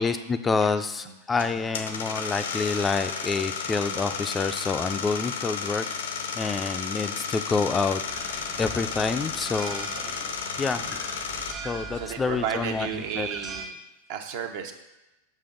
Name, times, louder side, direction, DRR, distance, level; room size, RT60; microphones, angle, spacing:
voice 1, 0.0-5.8 6.4-8.0 8.6-10.2 10.6-10.9 11.6-13.3, left 4 dB, 20° left, 10 dB, 0.3 m, -27 dB
voice 2, 0.6-1.2 6.9-7.2 11.3-11.7 11.9-13.8 14.1-14.7, right 8 dB, 60° right, 6 dB, 0.7 m, -34 dB
sound 1, 1.3-11.5, left 6 dB, 85° left, 0.6 m, -33 dB
sound 2, 8.1-13.7, right 5 dB, 35° right, 0.9 m, -41 dB
5.3 x 5.2 x 3.8 m, 0.99 s
hypercardioid pair, 110°, 0 cm